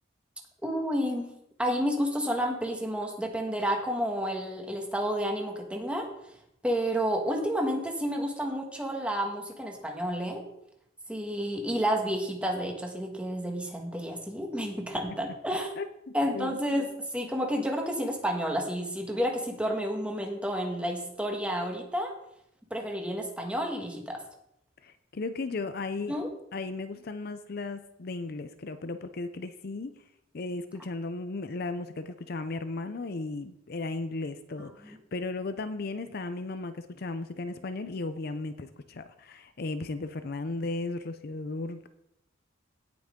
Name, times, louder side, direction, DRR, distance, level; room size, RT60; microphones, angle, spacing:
voice 1, 0.6-1.3 1.6-6.1 6.6-10.4 11.1-15.7 16.1-16.9 17.1-22.1 22.7-24.2 26.1-26.3 34.8-35.0, equal, 5° right, 2 dB, 1.5 m, -30 dB
voice 2, 16.3-16.6 24.8-26.1 26.5-30.0 30.3-41.9, left 3 dB, 55° left, 10 dB, 0.6 m, -35 dB
17.0 x 6.0 x 3.7 m, 0.77 s
head